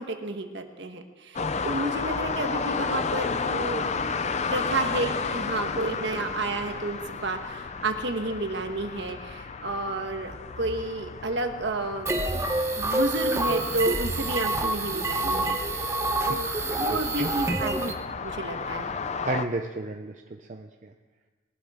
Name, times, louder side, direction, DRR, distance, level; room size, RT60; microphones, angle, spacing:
voice 1, 0.0-3.9 4.5-12.1 12.8-15.6 16.3-18.9, right 2 dB, 60° right, 5 dB, 1.3 m, -31 dB
sound 1, 1.4-19.5, left 4 dB, 35° left, 0.5 m, -33 dB
sound 2, 12.1-17.9, right 2 dB, 15° right, 0.9 m, -27 dB
voice 2, 16.7-17.3 19.2-20.1 20.4-20.9, right 2 dB, 40° right, 4 dB, 0.6 m, -32 dB
21.0 x 12.0 x 3.7 m, 1.3 s
head